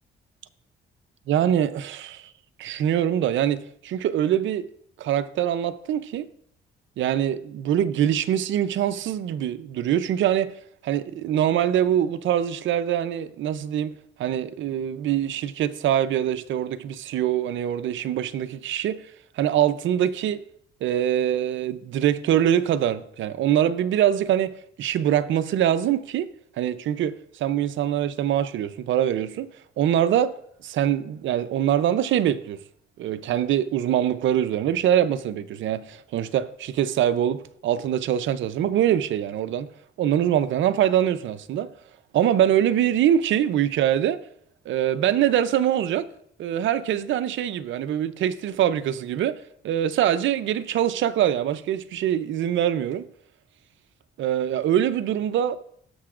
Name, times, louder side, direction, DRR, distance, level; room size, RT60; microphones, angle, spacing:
voice 1, 1.3-2.3 2.6-4.7 5.0-6.3 7.0-10.5 10.8-13.9 14.2-19.0 19.4-20.4 20.8-24.5 24.8-26.3 26.6-29.5 29.8-30.3 30.6-32.6 33.0-39.7 40.0-41.7 42.1-44.2 44.7-46.1 46.4-49.4 49.6-53.1 54.2-55.6, right 10 dB, 75° right, 0.6 m, -23 dB
17.5 x 6.8 x 2.5 m
cardioid pair, 90°, 20 cm